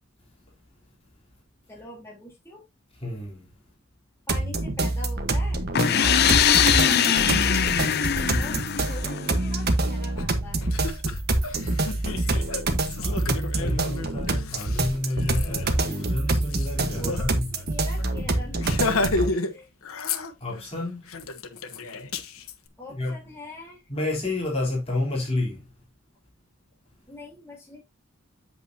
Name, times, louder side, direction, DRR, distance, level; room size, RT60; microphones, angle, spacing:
voice 1, 1.7-2.6 4.3-5.7 5.9-7.4 8.4-10.7 16.9-19.0 19.5-19.7 22.8-23.8 27.1-27.8, left 1 dB, 15° left, 3.7 m, -43 dB
voice 2, 3.0-3.5 13.0-17.5 20.4-21.1 22.9-23.2 23.9-25.6, left 2 dB, 30° left, 3.6 m, -30 dB
sound 1, 4.3-19.3, right 2 dB, 50° right, 1.3 m, -26 dB
sound 2, 5.7-9.5, left 8 dB, 50° left, 0.6 m, -22 dB
Laughter, 10.2-10.3 10.6-17.3 17.6-17.7 18.0-18.2 18.6-19.5 19.8-20.6 21.1-22.5, left 3 dB, 85° left, 1.1 m, -32 dB
8.2 x 7.9 x 2.8 m
head